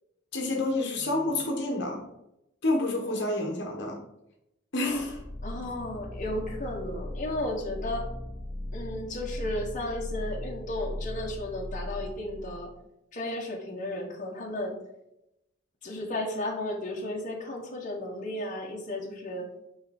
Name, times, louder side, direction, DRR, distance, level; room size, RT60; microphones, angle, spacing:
voice 1, 0.3-2.0 2.6-4.0 4.7-5.2, left 2 dB, 60° left, 1 dB, 1.2 m, -28 dB
voice 2, 3.1-3.5 5.4-8.1 8.7-12.7 13.1-14.8 15.8-19.5, left 1 dB, 40° left, -1 dB, 1.3 m, -34 dB
sound 1, 4.9-12.7, left 1 dB, 20° left, 0.8 m, -38 dB
9.2 x 3.5 x 4.3 m, 0.85 s
head